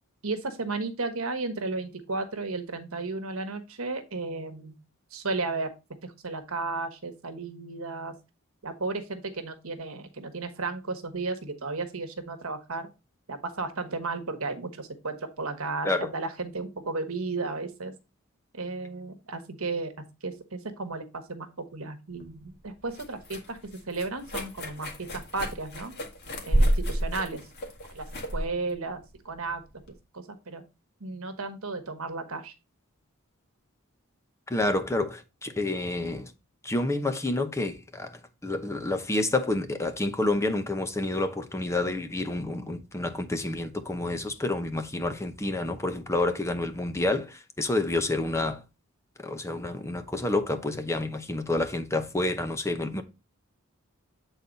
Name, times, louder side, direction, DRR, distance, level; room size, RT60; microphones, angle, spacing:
voice 1, 0.2-4.8 5.1-5.7 6.0-8.1 8.6-12.9 13.3-17.9 18.5-25.9 26.4-27.4 27.9-28.0 28.3-29.6 29.9-30.6 31.0-32.5, right 3 dB, 80° right, 1.2 m, -34 dB
sound 1, 22.2-29.9, right 1 dB, 55° left, 1.8 m, -31 dB
voice 2, 34.5-36.3 36.6-48.6 49.2-53.0, left 2 dB, 15° left, 0.7 m, -29 dB
8.4 x 4.0 x 4.0 m
head